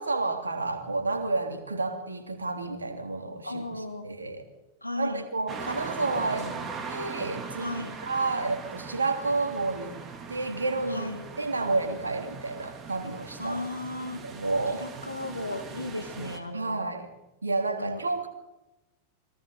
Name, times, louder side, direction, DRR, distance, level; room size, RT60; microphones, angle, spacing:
voice 1, 0.0-4.5 5.0-6.6 6.9-13.7 14.1-14.9 16.5-17.1 17.4-18.3, right 3 dB, 75° right, 6 dB, 3.0 m, -30 dB
voice 2, 3.4-4.1 4.8-5.2 7.6-8.0 10.9-11.2 13.4-14.2 14.8-16.9 17.8-18.0, left 1 dB, 85° left, 6 dB, 2.2 m, -35 dB
sound 1, 5.5-16.4, right 5 dB, 25° right, 3.1 m, -40 dB
29.0 x 22.5 x 4.1 m, 0.99 s
figure-of-eight pair, 90°, 0 cm